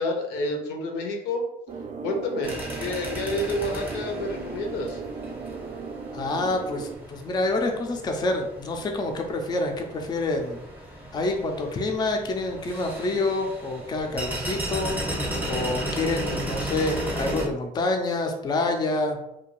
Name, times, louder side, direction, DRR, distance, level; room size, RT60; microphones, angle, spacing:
voice 1, 0.0-1.4 2.0-5.0, left 1 dB, 85° left, 2 dB, 0.6 m, -29 dB
sound 1, 1.7-7.0, right 4 dB, 50° right, 0.4 m, -36 dB
sound 2, 2.4-17.5, right 1 dB, 10° right, 0.7 m, -35 dB
voice 2, 6.1-10.6 11.1-14.9 15.5-19.2, left 2 dB, 25° left, 3 dB, 0.4 m, -27 dB
2.5 x 2.2 x 3.0 m, 0.84 s
cardioid pair, 110°, 17 cm